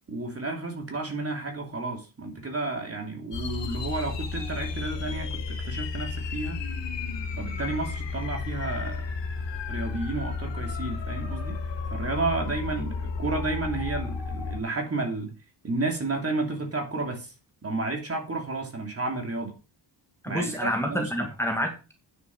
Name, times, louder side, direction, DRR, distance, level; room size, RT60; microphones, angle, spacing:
voice 1, 0.1-6.6 7.4-9.1 9.5-11.6 11.9-15.3 15.6-17.3 17.6-19.6 20.3-21.3, right 3 dB, 35° right, 3 dB, 2.9 m, -32 dB
sound 1, 3.3-14.6, left 4 dB, 85° left, 2.1 m, -32 dB
voice 2, 20.2-21.9, equal, 5° left, 2 dB, 2.1 m, -28 dB
9.5 x 6.9 x 6.1 m, 0.32 s
wide cardioid pair, 135°, 42 cm